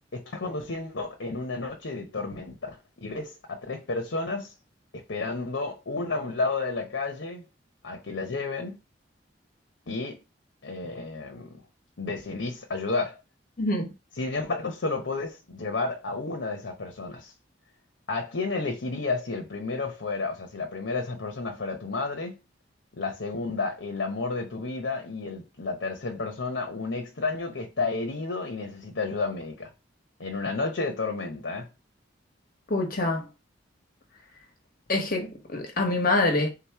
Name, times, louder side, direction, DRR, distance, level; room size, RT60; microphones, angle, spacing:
voice 1, 0.1-2.7 3.0-4.5 4.9-7.4 7.8-8.8 9.9-10.2 10.6-11.5 12.0-13.2 14.2-17.3 18.1-22.4 22.9-29.7 30.2-31.7, left 3 dB, 70° left, 0.8 m, -31 dB
voice 2, 13.6-13.9 32.7-33.3 34.9-36.5, left 2 dB, 50° left, 1.1 m, -25 dB
3.6 x 2.9 x 4.6 m
head